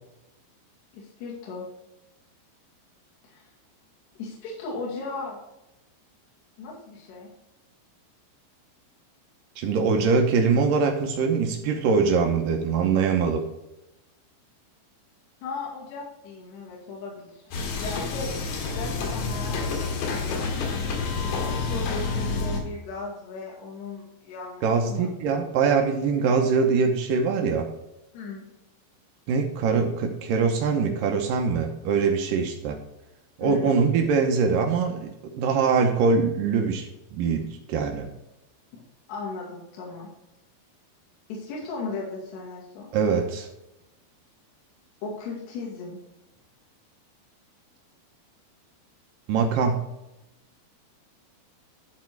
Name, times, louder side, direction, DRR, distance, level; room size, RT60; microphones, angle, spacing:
voice 1, 0.9-1.7 3.2-3.5 4.2-5.4 6.6-7.3 15.4-17.6 17.8-20.8 21.2-25.1 28.1-28.4 33.4-33.8 38.7-38.8 39.1-40.1 41.3-42.9 45.0-46.0, left 3 dB, 65° left, -5 dB, 4.1 m, -37 dB
voice 2, 9.6-13.4 24.6-27.7 29.3-32.8 33.4-38.1 42.9-43.5 49.3-49.9, right 5 dB, 80° right, 3 dB, 1.9 m, -23 dB
sound 1, 17.5-22.6, left 4 dB, 85° left, 4.0 m, -28 dB
13.0 x 4.3 x 4.6 m, 0.92 s
omnidirectional pair, 5.2 m